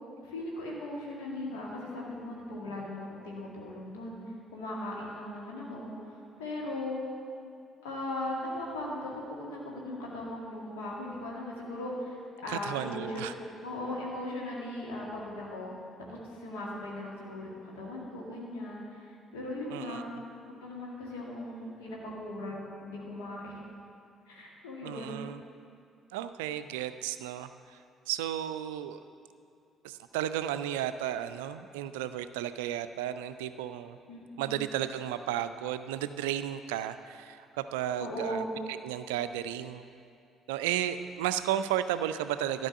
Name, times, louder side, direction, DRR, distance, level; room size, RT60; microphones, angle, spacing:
voice 1, 0.2-4.2 4.5-7.0 7.8-13.2 13.6-15.7 16.0-20.0 20.5-23.5 24.3-25.2 34.1-34.6 38.0-38.5, left 1 dB, 70° left, -4 dB, 2.0 m, -38 dB
voice 2, 12.5-13.3 19.7-20.1 24.8-25.4 26.1-27.5 28.1-29.0 29.8-34.0 34.4-39.9 40.5-42.7, right 11 dB, 70° right, 11 dB, 0.4 m, -33 dB
12.0 x 5.4 x 8.4 m, 2.4 s
figure-of-eight pair, 45°, 0 cm